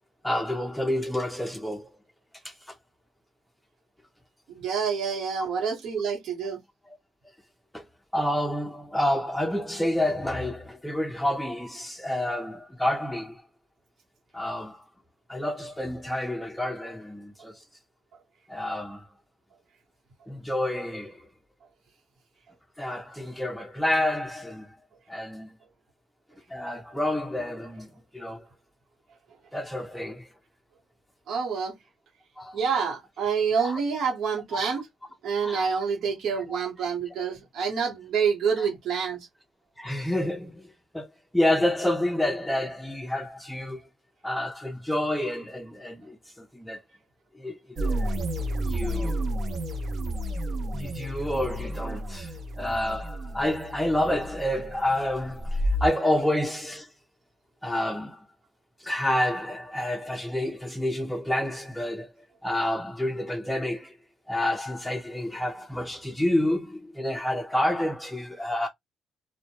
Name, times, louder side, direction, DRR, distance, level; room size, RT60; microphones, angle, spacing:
voice 1, 0.2-2.0 2.4-2.8 6.9-7.0 7.7-7.8 8.1-13.4 14.3-14.9 15.3-17.7 18.5-19.1 20.3-21.3 22.8-24.8 25.1-25.5 26.5-28.5 29.5-30.3 32.4-32.6 33.6-33.8 34.6-34.7 35.4-35.8 36.5-36.6 38.6-38.7 39.8-41.1 41.3-43.8 44.2-46.8 47.3-48.2 48.6-49.2 50.7-56.9 57.6-58.3 58.8-62.1 62.4-64.0 64.3-68.7, left 1 dB, 5° left, 0.4 m, -29 dB
voice 2, 4.5-6.6 31.3-31.7 32.5-34.8 35.2-39.2, right 6 dB, 75° right, 1.0 m, -27 dB
sound 1, 47.8-55.9, right 1 dB, 55° right, 0.6 m, -31 dB
2.1 x 2.0 x 2.8 m
cardioid pair, 90°, 0 cm